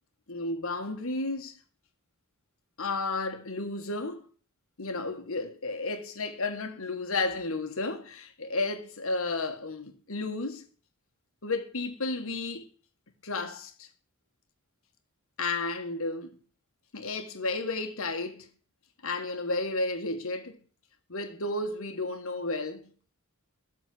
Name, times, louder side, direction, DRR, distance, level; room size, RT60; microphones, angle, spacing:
voice 1, 0.3-1.6 2.8-4.3 4.8-10.6 11.4-12.7 13.2-13.9 15.4-16.4 16.9-18.5 19.0-20.6 21.1-22.9, left 3 dB, 65° left, 1.5 m, -32 dB
12.5 x 4.4 x 7.7 m
head